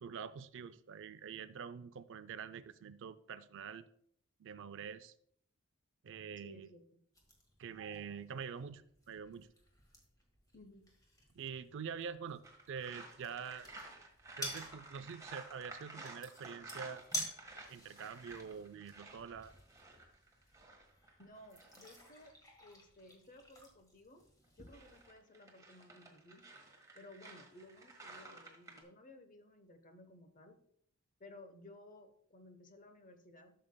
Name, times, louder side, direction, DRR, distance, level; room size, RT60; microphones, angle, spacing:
voice 1, 0.0-3.8 4.4-5.1 6.0-6.7 7.6-9.5 11.3-13.7 14.4-17.0 17.7-19.5, right 6 dB, 60° right, 14 dB, 0.4 m, -46 dB
voice 2, 6.4-7.0 10.5-10.9 21.2-22.3 22.6-24.2 24.6-26.5 26.9-30.6 31.2-33.5, left 1 dB, 40° left, 7 dB, 0.9 m, -57 dB
sound 1, 7.1-25.1, equal, 15° left, 1.7 m, -51 dB
sound 2, 12.4-22.3 24.4-28.8, right 2 dB, 15° right, 1.4 m, -53 dB
12.0 x 6.6 x 2.2 m, 0.67 s
head